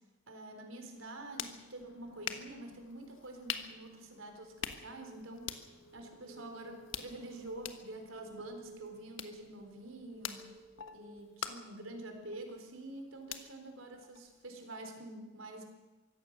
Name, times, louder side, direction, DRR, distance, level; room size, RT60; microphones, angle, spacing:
voice 1, 0.3-5.6 5.9-10.5 10.9-15.6, right 1 dB, 85° right, 4 dB, 4.0 m, -47 dB
sound 1, 0.9-14.7, left 8 dB, 75° left, 1.4 m, -47 dB
sound 2, 3.8-12.2, right 1 dB, 55° right, 6.7 m, -58 dB
24.0 x 16.0 x 6.8 m, 1.2 s
head